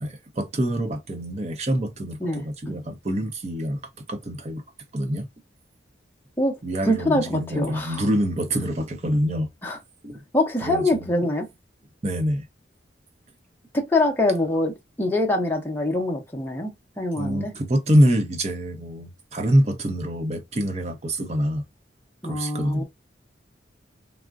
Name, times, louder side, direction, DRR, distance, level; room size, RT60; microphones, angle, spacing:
voice 1, 0.0-3.8 4.1-4.6 4.9-5.3 6.6-9.5 10.0-10.2 10.6-11.1 12.0-12.5 17.2-21.6 22.2-22.8, equal, 35° right, 0.6 m, -25 dB
voice 2, 2.2-2.8 6.4-6.6 6.9-8.0 9.6-9.8 10.3-11.5 13.7-14.7 15.0-16.7 17.0-17.5 22.2-22.8, left 1 dB, 10° left, 0.6 m, -24 dB
3.5 x 2.1 x 2.4 m
head